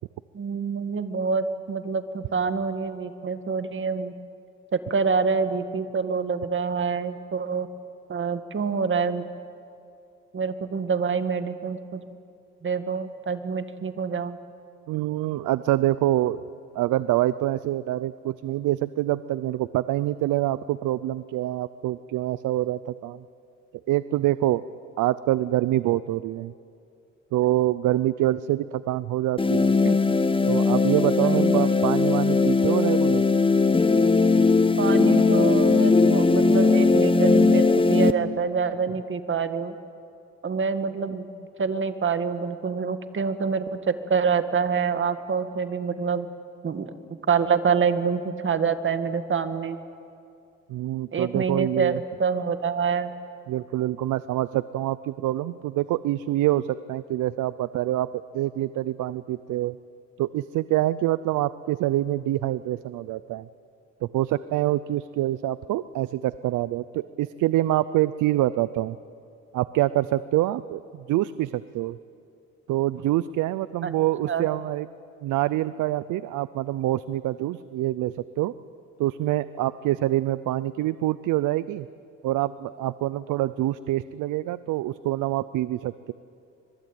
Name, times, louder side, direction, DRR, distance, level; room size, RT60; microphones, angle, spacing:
voice 1, 0.3-4.1 4.7-7.7 8.1-9.3 10.3-12.1 12.6-14.4 29.8-30.0 31.2-31.7 34.8-39.8 40.4-41.3 41.6-46.3 46.6-46.9 47.3-49.8 51.1-53.1 73.8-73.9 74.3-74.5, right 5 dB, 40° right, 9 dB, 1.9 m, -26 dB
voice 2, 14.9-16.4 16.7-23.2 23.9-24.6 25.0-26.5 27.3-29.7 30.5-33.2 34.4-34.5 50.7-52.0 53.5-59.8 60.2-63.5 64.0-69.0 69.5-72.0 72.7-74.9 75.2-78.5 79.0-81.9 82.2-86.1, right 15 dB, 85° right, 16 dB, 0.6 m, -26 dB
sound 1, 29.4-38.1, left 3 dB, 15° left, 1.2 m, -19 dB
25.5 x 22.0 x 9.1 m, 2.5 s
cardioid pair, 90°, 30 cm